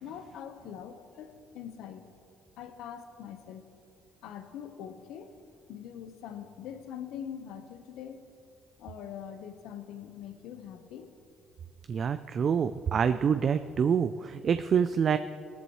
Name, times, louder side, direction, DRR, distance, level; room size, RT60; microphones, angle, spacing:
voice 1, 0.0-2.1 2.6-3.7 4.2-5.3 5.7-8.3 8.8-11.1, left 8 dB, 80° left, 8 dB, 1.0 m, -43 dB
voice 2, 11.9-15.2, right 7 dB, 50° right, 11 dB, 0.4 m, -26 dB
17.5 x 14.0 x 3.1 m, 2.4 s
cardioid pair, 85°, 0 cm